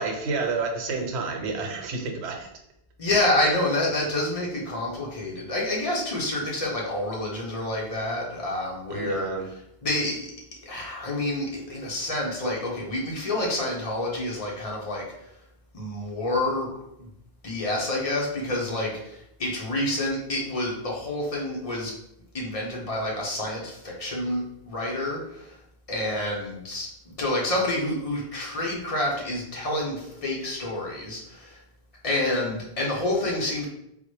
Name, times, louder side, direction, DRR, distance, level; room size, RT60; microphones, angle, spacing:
voice 1, 0.0-2.5 8.9-9.5, right 4 dB, 90° right, 3 dB, 0.9 m, -29 dB
voice 2, 3.0-9.3 9.8-10.3 10.6-15.0 15.7-16.7 17.0-17.1 17.4-21.9 22.3-25.6 25.9-31.6 32.0-33.7, left 1 dB, 35° left, -3 dB, 0.8 m, -28 dB
3.8 x 2.1 x 3.1 m, 0.78 s
omnidirectional pair, 1.1 m